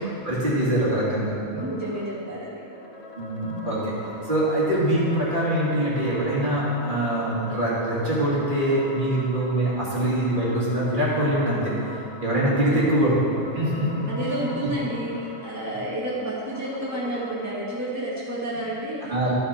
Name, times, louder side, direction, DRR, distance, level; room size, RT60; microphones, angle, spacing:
voice 1, 0.2-1.6 3.2-3.9 4.2-11.7 12.2-13.1 13.5-14.1 14.4-14.7 19.1-19.3, right 1 dB, 35° right, -8 dB, 2.5 m, -24 dB
sound 1, 1.6-17.6, left 2 dB, 90° left, 1.4 m, -41 dB
voice 2, 1.6-2.5 12.5-12.9 14.1-19.3, right 1 dB, 10° right, -9 dB, 1.7 m, -30 dB
14.0 x 6.0 x 4.2 m, 2.5 s
omnidirectional pair, 1.4 m